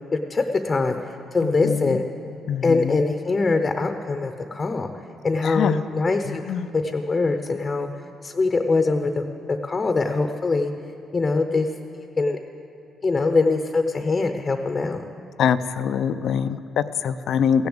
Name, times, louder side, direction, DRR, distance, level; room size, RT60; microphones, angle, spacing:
voice 1, 0.1-2.0 2.6-4.9 5.2-6.4 6.7-7.9 8.2-9.2 9.5-10.7 11.1-11.7 12.2-12.4 13.0-15.0, left 3 dB, 30° left, 6 dB, 0.7 m, -23 dB
voice 2, 1.4-2.0 2.5-3.0 5.4-5.8 6.3-6.7 15.4-17.7, left 8 dB, 70° left, 13 dB, 0.4 m, -24 dB
15.5 x 7.0 x 7.9 m, 2.6 s
cardioid pair, 90°, 0 cm